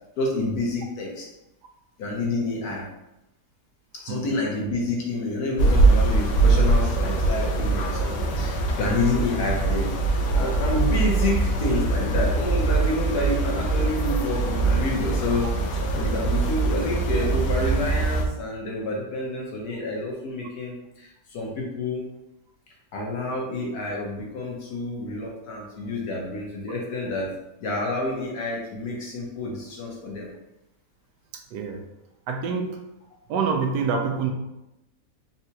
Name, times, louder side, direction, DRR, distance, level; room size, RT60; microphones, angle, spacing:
voice 1, 0.2-1.2 2.0-2.8 4.0-9.9 10.3-15.4 15.7-22.0 22.9-27.3 27.6-30.3, left 2 dB, 65° left, -2 dB, 1.3 m, -28 dB
sound 1, 5.6-18.3, right 3 dB, 85° left, 1.2 m, -22 dB
voice 2, 31.5-31.8 32.3-32.8 33.3-34.3, right 5 dB, 80° right, 3 dB, 1.2 m, -26 dB
4.1 x 2.3 x 2.8 m, 0.91 s
omnidirectional pair, 1.8 m